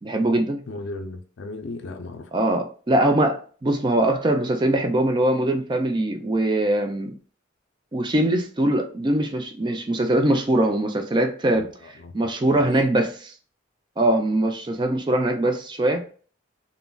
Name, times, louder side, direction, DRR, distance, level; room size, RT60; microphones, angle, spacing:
voice 1, 0.0-0.6 2.3-7.2 7.9-11.7 12.1-13.3 14.0-16.1, right 1 dB, 25° right, 0.4 m, -22 dB
voice 2, 0.7-2.6 11.5-12.7, left 2 dB, 65° left, 0.5 m, -37 dB
3.7 x 2.0 x 2.2 m
head